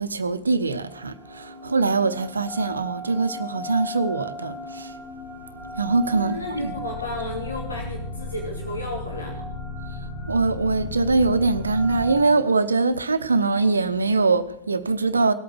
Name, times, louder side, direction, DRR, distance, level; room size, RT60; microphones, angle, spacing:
voice 1, 0.0-4.9 5.8-6.7 10.3-15.3, right 3 dB, 75° right, 0.9 m, -23 dB
sound 1, 0.9-12.2, left 1 dB, 35° left, 5.7 m, -35 dB
voice 2, 6.1-9.5, left 1 dB, 80° left, 2.7 m, -33 dB
18.0 x 8.5 x 7.7 m
figure-of-eight pair, 90°, 0 cm